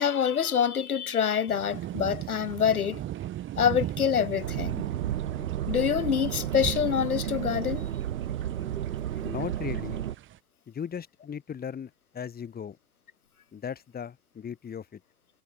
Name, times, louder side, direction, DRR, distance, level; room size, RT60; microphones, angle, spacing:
voice 1, 0.0-3.0 3.6-4.8 5.7-7.9, left 8 dB, 70° left, 3.8 m, -26 dB
sound 1, 1.5-10.4, right 13 dB, 25° right, 2.0 m, -38 dB
sound 2, 4.4-10.1, right 11 dB, 60° right, 7.4 m, -32 dB
voice 2, 9.2-10.0 10.7-12.8 13.5-15.0, left 7 dB, 20° left, 6.1 m, -37 dB
figure-of-eight pair, 95°, 46 cm